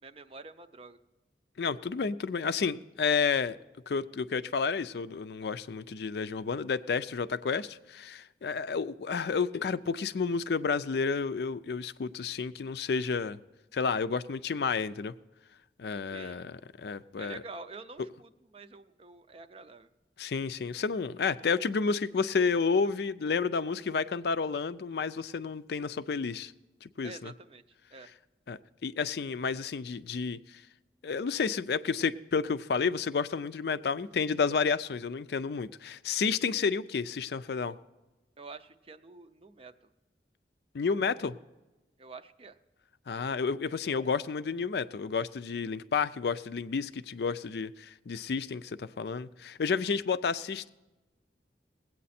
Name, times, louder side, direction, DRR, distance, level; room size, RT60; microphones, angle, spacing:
voice 1, 0.0-1.0 16.0-16.5 17.2-19.9 27.0-27.6 27.9-28.1 38.4-39.9 42.0-42.6, right 3 dB, 30° right, 0.5 m, -47 dB
voice 2, 1.6-3.6 3.9-13.4 13.7-15.1 15.8-17.4 20.2-26.5 26.8-27.3 28.5-30.6 31.0-37.8 40.7-41.4 43.1-50.7, left 5 dB, 65° left, 0.4 m, -31 dB
19.5 x 8.5 x 4.2 m
head